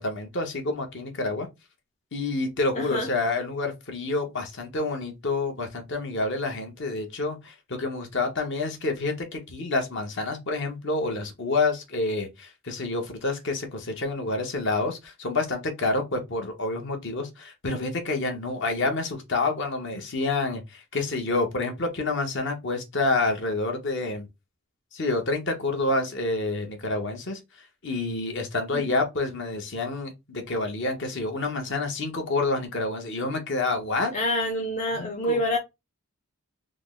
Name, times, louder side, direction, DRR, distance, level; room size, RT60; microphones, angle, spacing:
voice 1, 0.0-1.5 2.1-24.3 24.9-27.4 27.8-34.1 34.9-35.6, left 3 dB, 55° left, 1.0 m, -28 dB
voice 2, 2.8-3.1 28.7-28.8 34.1-35.6, left 1 dB, 35° left, 0.6 m, -27 dB
3.7 x 2.1 x 3.6 m
head